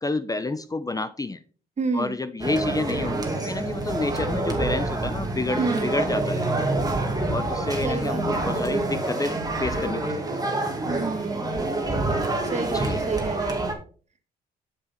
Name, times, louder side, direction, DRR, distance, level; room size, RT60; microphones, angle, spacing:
voice 1, 0.0-1.4 1.9-6.4 7.3-10.2 12.7-13.0, left 3 dB, 20° left, 12 dB, 0.7 m, -29 dB
voice 2, 1.8-2.2 5.6-5.9 7.8-8.5 10.9-11.5 12.1-12.2 12.5-13.7, right 4 dB, 40° right, 8 dB, 1.7 m, -29 dB
sound 1, 2.4-13.7, right 2 dB, 20° right, 2.1 m, -27 dB
7.3 x 7.0 x 4.3 m, 0.39 s
supercardioid pair, 70°, 18 cm